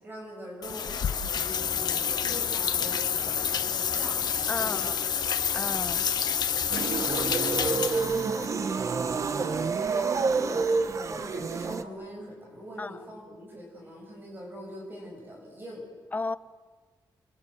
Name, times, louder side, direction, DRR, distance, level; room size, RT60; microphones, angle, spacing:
voice 1, 0.0-4.2 4.6-4.9 6.6-7.0 7.9-9.7 9.9-15.8, equal, 25° right, -1 dB, 7.3 m, -42 dB
sound 1, 0.6-8.5, left 7 dB, 65° left, 1.2 m, -28 dB
voice 2, 4.5-4.9 5.5-6.1 12.8-13.0 16.1-16.4, left 3 dB, 20° left, 13 dB, 0.8 m, -33 dB
sound 2, 6.7-11.8, right 4 dB, 45° right, 1.1 m, -28 dB
29.0 x 23.5 x 8.0 m, 1.4 s
wide cardioid pair, 155°, 8 cm